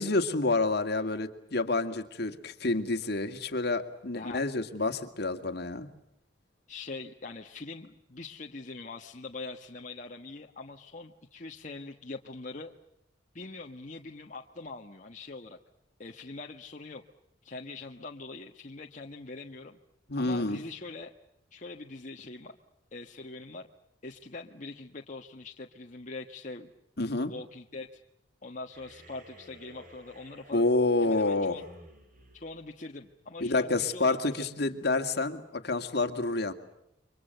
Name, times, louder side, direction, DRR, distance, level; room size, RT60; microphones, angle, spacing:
voice 1, 0.0-5.9 20.1-20.6 27.0-27.3 30.5-31.6 33.4-36.5, left 2 dB, 60° left, 7 dB, 2.2 m, -28 dB
voice 2, 4.1-4.5 6.7-12.7 13.3-15.6 16.0-17.0 17.4-19.8 20.2-21.1 21.5-22.6 22.9-23.7 24.0-26.7 27.3-28.0 28.4-30.7 31.0-31.6 32.3-34.5, left 3 dB, 45° left, 2 dB, 1.3 m, -43 dB
sound 1, 28.7-33.4, right 1 dB, 45° right, 6.4 m, -55 dB
30.0 x 24.5 x 6.8 m, 0.83 s
head